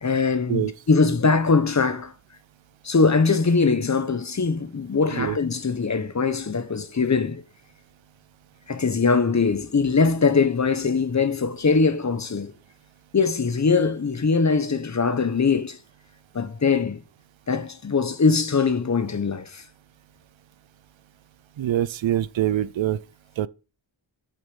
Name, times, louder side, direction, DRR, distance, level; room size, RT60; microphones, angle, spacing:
voice 1, 0.0-2.1 2.8-7.4 8.7-12.5 13.1-15.8 16.3-17.0 17.5-19.6, left 4 dB, 35° left, 1.0 m, -22 dB
voice 2, 21.6-23.0 23.4-23.5, right 12 dB, 70° right, 0.6 m, -24 dB
8.9 x 6.9 x 5.4 m
wide cardioid pair, 120°, 47 cm